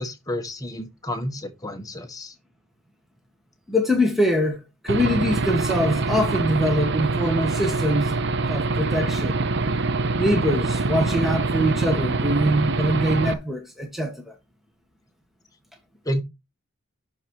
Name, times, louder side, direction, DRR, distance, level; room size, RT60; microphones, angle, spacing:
voice 1, 0.0-2.3 16.0-16.2, left 1 dB, 15° left, 1.3 m, -30 dB
voice 2, 3.7-4.6 4.8-8.1 8.5-9.4 10.2-14.3, equal, ahead, 1.6 m, -23 dB
Aircraft / Engine, 4.9-13.3, right 3 dB, 55° right, 0.7 m, -24 dB
11.0 x 4.3 x 4.8 m
head